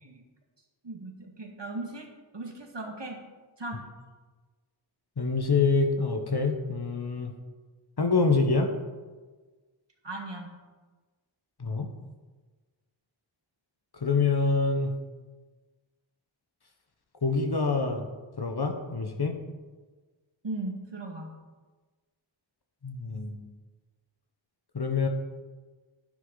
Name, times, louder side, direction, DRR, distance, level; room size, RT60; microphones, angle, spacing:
voice 1, 0.8-2.1 2.3-3.2 3.6-3.9 10.0-10.5 20.4-21.3, right 2 dB, 60° right, 2 dB, 1.9 m, -37 dB
voice 2, 5.2-7.3 8.0-8.7 11.6-11.9 14.0-14.9 17.2-18.0 18.4-19.4 22.8-23.4 24.7-25.1, left 4 dB, 50° left, 4 dB, 1.3 m, -26 dB
10.5 x 10.0 x 4.1 m, 1.3 s
wide cardioid pair, 65°, 48 cm